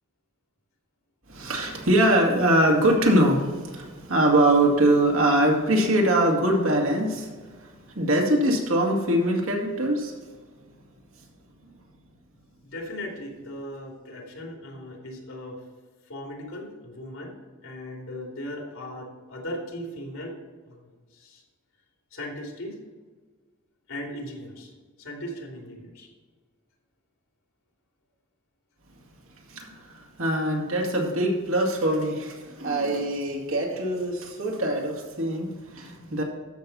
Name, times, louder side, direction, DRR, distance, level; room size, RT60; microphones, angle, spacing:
voice 1, 1.3-7.3 7.6-10.1 29.5-36.2, right 1 dB, 85° right, 0 dB, 2.4 m, -23 dB
voice 2, 12.6-15.6 16.1-17.3 17.6-20.3 20.7-20.8 21.1-21.4 22.1-22.8 23.9-24.7 25.0-26.1, left 1 dB, 85° left, 0 dB, 3.0 m, -37 dB
13.0 x 6.3 x 4.2 m, 1.5 s
head